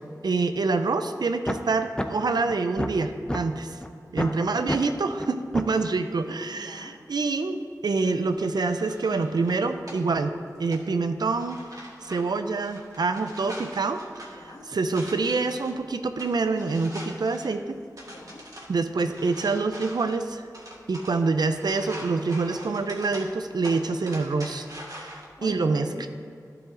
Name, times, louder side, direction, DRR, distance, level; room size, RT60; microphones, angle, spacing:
voice 1, 0.2-3.8 4.1-11.6 12.0-14.0 14.4-17.8 18.7-20.4 20.9-24.7 24.9-26.1, right 3 dB, 85° right, 8 dB, 0.5 m, -26 dB
sound 1, 1.5-1.6 2.0-2.1 2.5-3.4 3.8-3.9 4.2-4.3 4.7-4.8 5.2-5.3 5.5-5.7, left 1 dB, 10° left, 0.6 m, -28 dB
voice 2, 4.2-4.9 6.5-7.0 14.3-14.7 18.1-18.5 25.4-26.1, left 1 dB, 60° left, 0 dB, 1.2 m, -43 dB
sound 2, 8.3-25.3, equal, 55° right, 1.8 m, -45 dB
11.5 x 4.9 x 3.7 m, 2.4 s
wide cardioid pair, 50°, 7 cm